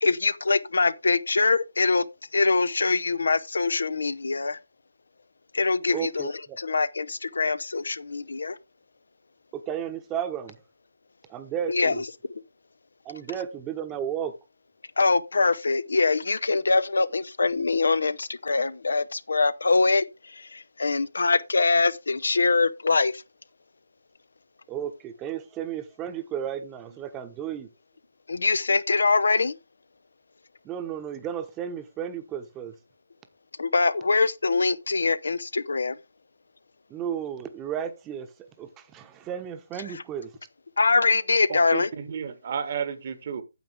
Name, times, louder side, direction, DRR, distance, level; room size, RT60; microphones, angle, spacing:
voice 1, 0.0-2.0 2.3-4.6 5.5-6.3 6.6-8.6 11.7-12.0 15.0-23.2 28.3-29.6 33.6-36.0 40.8-41.9, left 3 dB, 65° left, 0.6 m, -23 dB
voice 2, 5.9-6.6 9.5-10.6 11.3-12.0 13.0-14.4 24.7-27.7 30.6-32.8 36.9-38.3 38.6-40.3, right 9 dB, 15° right, 1.0 m, -33 dB
voice 3, 41.5-43.4, right 7 dB, 40° right, 1.3 m, -32 dB
9.3 x 7.7 x 3.6 m
figure-of-eight pair, 145°, 0 cm